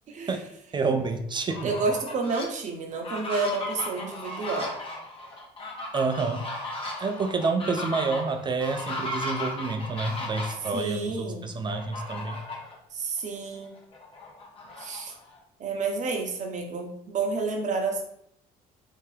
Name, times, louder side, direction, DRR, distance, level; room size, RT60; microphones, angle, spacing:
voice 1, 0.1-0.4 0.8-0.9 1.6-4.7 10.7-11.5 12.9-13.7 14.8-15.1 15.6-18.1, right 4 dB, 45° right, 2 dB, 0.8 m, -30 dB
voice 2, 0.7-1.7 5.9-6.5 7.0-12.4, right 4 dB, 25° right, 6 dB, 0.3 m, -28 dB
Fowl, 1.4-2.4 2.9-10.7 11.7-12.7 13.2-13.3 13.6-15.4, left 2 dB, 30° left, 1.0 m, -36 dB
3.4 x 2.8 x 3.2 m, 0.74 s
cardioid pair, 110°, 17 cm